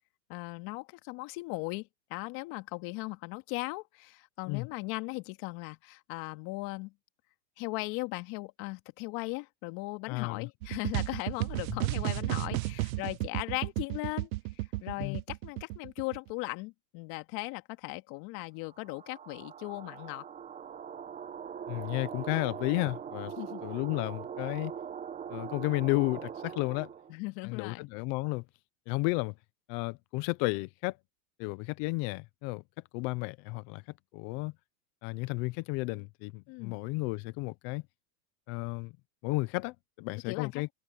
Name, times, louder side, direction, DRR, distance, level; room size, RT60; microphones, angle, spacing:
voice 1, 0.3-6.9 7.6-20.3 23.4-23.7 27.1-27.9 36.5-36.8 40.3-40.7, left 24 dB, 45° left, 2.1 m, -38 dB
voice 2, 10.1-10.5 11.7-11.8 15.0-15.2 21.7-23.3 23.6-24.7 25.3-26.9 27.4-28.4 28.9-29.3 29.7-31.0 31.4-32.6 32.9-34.5 35.0-37.8 38.5-38.9 39.2-40.7, left 24 dB, 25° left, 0.4 m, -33 dB
sound 1, 10.6-16.3, right 20 dB, 60° right, 0.5 m, -33 dB
sound 2, 18.7-27.1, right 8 dB, 15° right, 0.9 m, -42 dB
hypercardioid pair, 130°, 49 cm